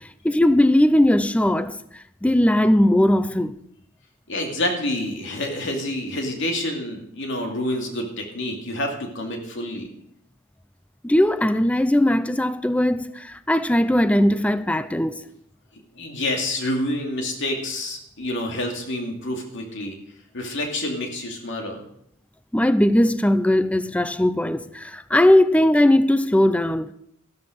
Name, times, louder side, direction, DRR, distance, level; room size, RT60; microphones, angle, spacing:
voice 1, 0.0-1.8 2.2-3.6 11.0-15.2 22.5-26.9, left 1 dB, 5° left, 0.4 m, -19 dB
voice 2, 4.3-9.9 16.0-20.0 20.3-21.8, left 1 dB, 65° left, 2.5 m, -28 dB
13.5 x 13.0 x 5.1 m
head